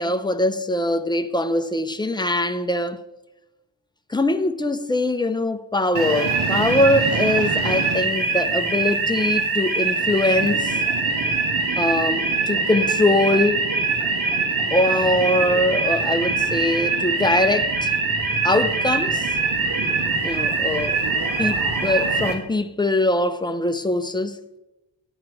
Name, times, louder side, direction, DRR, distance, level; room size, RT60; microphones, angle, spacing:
voice 1, 0.0-3.0 4.1-10.8 11.8-13.7 14.7-17.9 18.4-19.3 20.2-21.0 21.4-24.4, left 2 dB, 10° left, 0.4 m, -22 dB
sound 1, 6.0-22.3, right 4 dB, 80° right, 1.8 m, -23 dB
10.5 x 8.9 x 4.7 m
wide cardioid pair, 130°, 46 cm